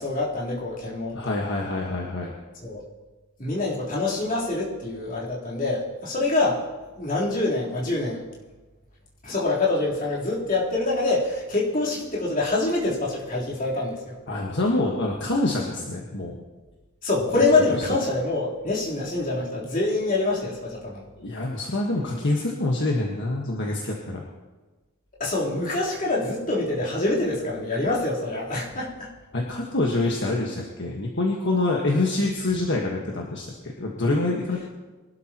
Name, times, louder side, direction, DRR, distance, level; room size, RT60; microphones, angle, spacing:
voice 1, 0.0-1.4 2.6-2.8 3.4-6.6 7.0-8.2 9.2-14.2 17.0-21.0 25.2-29.1, left 2 dB, 40° left, -6 dB, 3.7 m, -25 dB
voice 2, 1.1-2.3 14.3-16.4 21.2-24.2 29.3-34.7, left 2 dB, 55° left, -1 dB, 1.5 m, -26 dB
23.5 x 12.5 x 3.0 m, 1.2 s
head